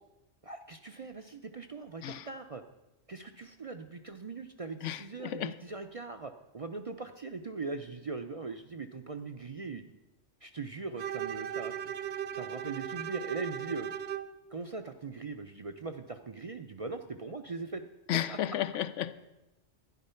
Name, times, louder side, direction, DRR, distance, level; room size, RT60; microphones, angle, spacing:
voice 1, 0.4-2.6 3.1-9.8 10.4-11.9 12.3-13.9 14.5-17.8 18.3-18.4, right 4 dB, 45° right, 0.4 m, -40 dB
voice 2, 4.8-5.5 18.1-19.2, left 11 dB, 85° left, 1.0 m, -33 dB
Bowed string instrument, 11.0-14.4, right 10 dB, 65° right, 0.9 m, -37 dB
12.0 x 10.5 x 5.6 m
omnidirectional pair, 1.2 m